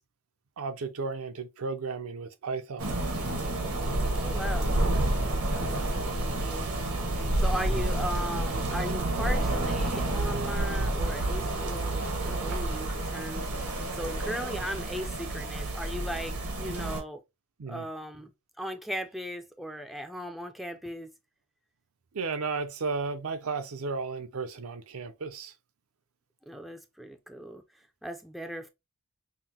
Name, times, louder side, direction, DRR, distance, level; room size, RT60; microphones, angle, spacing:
voice 1, 0.6-3.0 17.6-17.9 22.1-25.5, right 4 dB, 70° right, 0.5 m, -34 dB
sound 1, 2.8-17.0, right 1 dB, 85° right, 1.2 m, -29 dB
voice 2, 4.1-6.8 7.1-17.2 17.7-18.3 18.6-21.1 26.5-28.7, equal, ahead, 0.4 m, -38 dB
5.6 x 2.0 x 2.9 m
head